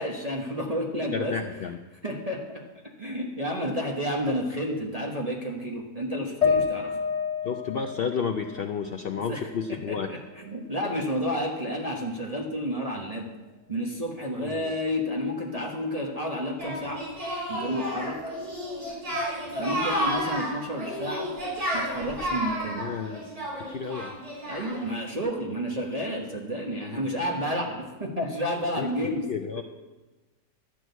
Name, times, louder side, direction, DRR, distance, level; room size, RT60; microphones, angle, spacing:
voice 1, 0.0-1.4 2.0-7.0 9.1-13.3 13.7-17.0 17.5-18.2 19.5-21.3 21.7-22.9 24.5-29.3, equal, 25° right, -2 dB, 1.1 m, -31 dB
voice 2, 0.9-1.8 7.4-10.1 14.4-14.7 22.8-23.3 23.6-24.2 28.8-28.9 29.3-29.6, left 6 dB, 70° left, 6 dB, 0.5 m, -31 dB
sound 1, 6.4-9.8 10.2-11.2, left 6 dB, 25° left, 1.3 m, -30 dB
Singing, 16.6-24.9, equal, 75° right, 4.3 m, -32 dB
12.0 x 6.2 x 8.0 m, 1.2 s
omnidirectional pair, 1.6 m